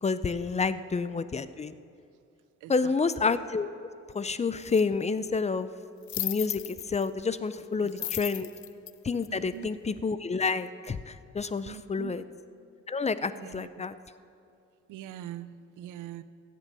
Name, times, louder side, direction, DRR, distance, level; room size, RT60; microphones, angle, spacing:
voice 1, 0.0-1.7 2.7-3.7 4.1-5.7 6.2-8.5 9.0-12.2 12.9-13.9, left 4 dB, 20° left, 14 dB, 0.5 m, -29 dB
voice 2, 2.6-2.9 7.8-8.1 9.3-9.7 11.6-12.2 13.3-13.9 14.9-16.2, right 13 dB, 90° right, 14 dB, 0.6 m, -43 dB
sound 1, 4.7-4.8 6.0-7.1 7.9-9.7, left 14 dB, 70° left, 0.6 m, -35 dB
16.0 x 7.6 x 6.8 m, 2.4 s
cardioid pair, 90°, 30 cm